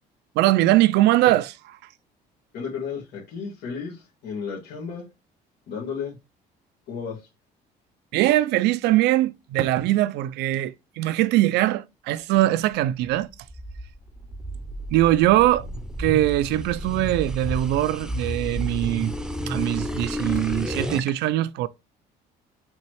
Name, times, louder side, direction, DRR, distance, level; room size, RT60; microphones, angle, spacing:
voice 1, 0.4-1.8 8.1-13.3 14.9-15.7 16.0-19.1 19.5-21.7, right 15 dB, 85° right, 0.4 m, -21 dB
voice 2, 2.5-5.0 5.7-6.2 6.9-7.2, left 6 dB, 75° left, 1.8 m, -33 dB
sound 1, 13.2-21.1, equal, 5° right, 0.7 m, -31 dB
5.6 x 3.0 x 3.1 m
cardioid pair, 110°, 17 cm